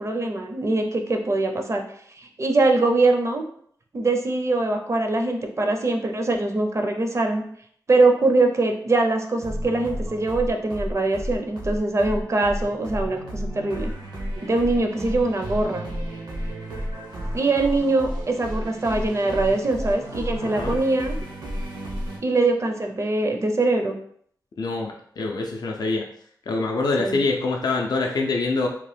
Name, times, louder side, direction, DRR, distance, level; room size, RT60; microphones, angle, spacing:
voice 1, 0.0-1.8 2.2-3.4 3.9-7.4 7.9-13.9 14.4-15.9 17.3-21.2 22.2-24.0 27.0-27.2, right 2 dB, 40° right, 4 dB, 0.5 m, -22 dB
sound 1, 9.4-22.2, equal, 85° right, 0.8 m, -32 dB
voice 2, 20.4-20.8 24.6-26.1 26.5-28.7, left 3 dB, 65° left, 0 dB, 0.4 m, -25 dB
2.9 x 2.1 x 3.2 m, 0.64 s
wide cardioid pair, 75°, 8 cm